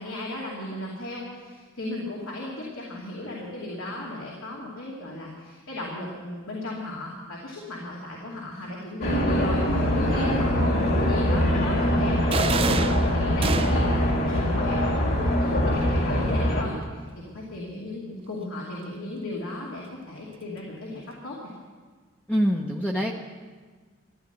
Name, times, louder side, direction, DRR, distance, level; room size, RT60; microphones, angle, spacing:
voice 1, 0.0-21.5, left 1 dB, 80° left, -4 dB, 2.7 m, -36 dB
sound 1, 9.0-16.6, equal, 50° left, 2.4 m, -23 dB
sound 2, 12.3-14.1, right 4 dB, 25° right, 0.5 m, -27 dB
voice 2, 22.3-23.1, equal, 5° left, -1 dB, 0.8 m, -24 dB
14.5 x 10.5 x 8.1 m, 1.5 s
head